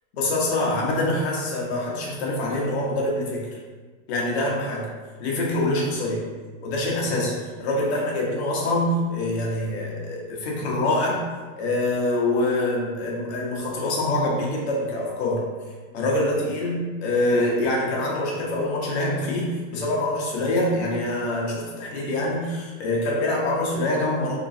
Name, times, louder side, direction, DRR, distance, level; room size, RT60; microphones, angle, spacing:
voice 1, 0.1-3.5 4.1-4.9 5.2-6.2 6.6-7.3 7.6-11.2 11.6-15.4 15.9-24.4, left 1 dB, 45° left, -3 dB, 1.0 m, -25 dB
3.6 x 3.0 x 2.7 m, 1.4 s
supercardioid pair, 175°, 43 cm